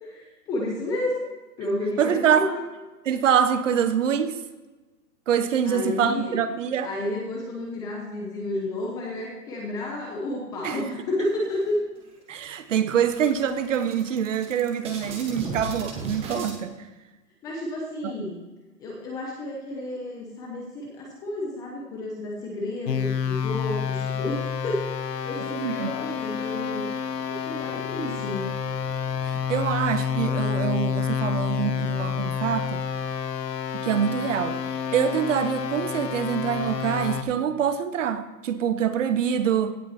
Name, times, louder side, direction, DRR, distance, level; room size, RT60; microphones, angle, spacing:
voice 1, 0.0-1.2 1.6-2.6 5.6-6.4 6.8-11.8 15.4-15.6 17.4-18.4 18.8-24.9 25.2-26.9 27.3-28.5, left 1 dB, 10° left, 0.7 m, -31 dB
voice 2, 2.0-2.5 3.0-4.4 5.3-6.9 10.6-10.9 12.3-16.8 18.0-18.1 25.6-25.9 29.2-32.8 33.7-39.7, right 8 dB, 50° right, 1.0 m, -25 dB
sound 1, 11.2-12.0 12.4-12.5 12.8-16.6, right 3 dB, 10° right, 1.0 m, -37 dB
sound 2, 22.9-37.2, left 7 dB, 85° left, 1.3 m, -29 dB
16.5 x 6.1 x 4.2 m
hypercardioid pair, 155°, 48 cm